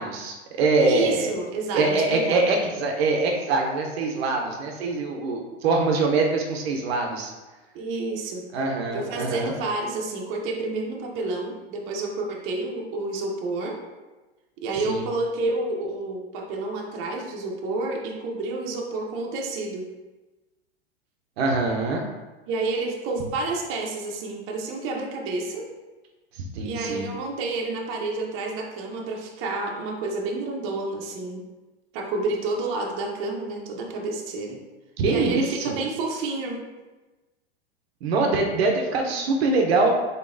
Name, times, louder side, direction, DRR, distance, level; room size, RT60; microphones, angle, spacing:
voice 1, 0.0-1.3 1.7-7.3 8.5-9.5 14.8-15.1 21.4-22.0 26.4-27.1 35.0-35.8 38.0-39.9, right 3 dB, 75° right, 1 dB, 0.8 m, -24 dB
voice 2, 0.8-2.4 7.7-8.4 8.9-13.8 14.6-19.9 22.5-25.7 26.6-31.4 31.9-34.6 35.1-36.6, right 3 dB, 40° right, 0 dB, 0.8 m, -29 dB
3.9 x 3.8 x 2.6 m, 1.2 s
hypercardioid pair, 120°, 31 cm